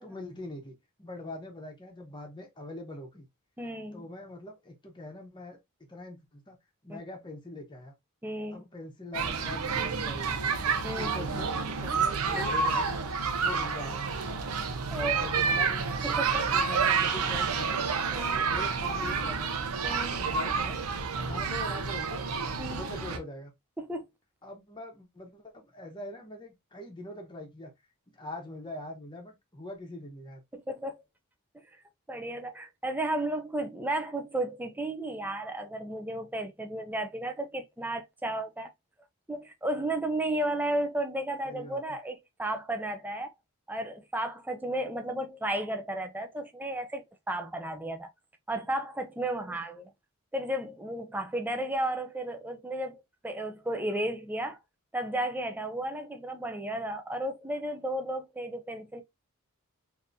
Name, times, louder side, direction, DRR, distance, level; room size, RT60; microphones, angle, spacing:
voice 1, 0.0-3.3 3.9-5.6 5.9-6.6 6.8-7.9 8.5-10.6 10.9-13.0 13.4-14.1 14.9-15.9 16.5-17.8 18.1-19.6 20.1-20.8 21.2-22.2 22.5-23.5 24.4-27.7 28.1-30.4 41.4-41.8, left 2 dB, 20° left, 0.9 m, -43 dB
voice 2, 3.6-4.0 6.9-7.0 8.2-8.6 10.8-11.1 12.3-12.5 14.9-15.3 16.0-16.5 18.1-18.5 19.8-20.2 22.6-22.9 23.8-24.1 30.5-31.0 32.1-38.7 39.3-43.3 43.7-48.1 48.5-49.9 50.3-54.6 54.9-59.0, right 1 dB, 10° right, 0.4 m, -33 dB
sound 1, 9.1-23.2, right 5 dB, 80° right, 0.7 m, -29 dB
3.7 x 2.7 x 2.6 m
head